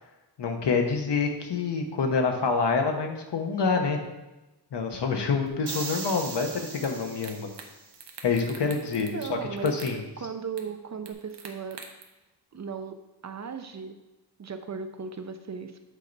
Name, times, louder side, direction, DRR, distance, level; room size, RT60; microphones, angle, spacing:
voice 1, 0.4-4.0 4.7-7.5 8.2-10.0, left 4 dB, 75° left, 4 dB, 1.1 m, -27 dB
sound 1, 5.7-7.9, right 3 dB, 70° right, 1.4 m, -39 dB
sound 2, 6.8-6.9 7.2-7.7 7.9-9.3 9.6-10.0 10.6-10.7 11.1-12.0, right 6 dB, 85° right, 1.0 m, -44 dB
voice 2, 9.1-9.7 10.2-11.8 12.5-14.0 14.4-15.8, right 5 dB, 45° right, 8 dB, 0.5 m, -37 dB
8.3 x 4.5 x 4.0 m, 1.0 s
wide cardioid pair, 175°, 41 cm